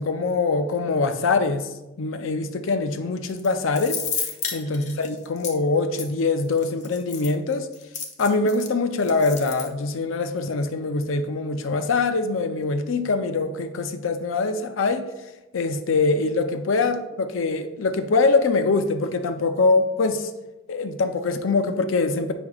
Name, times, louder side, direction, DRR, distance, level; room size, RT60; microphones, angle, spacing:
voice 1, 0.0-1.7 2.0-4.3 4.5-7.7 8.2-15.0 15.5-20.3 20.7-22.3, left 3 dB, 80° left, 8 dB, 0.5 m, -23 dB
sound 1, 3.3-5.5 6.0-6.1 6.6-8.7 9.0-9.7, left 6 dB, 40° left, 0.6 m, -31 dB
8.0 x 5.9 x 2.4 m, 0.99 s
head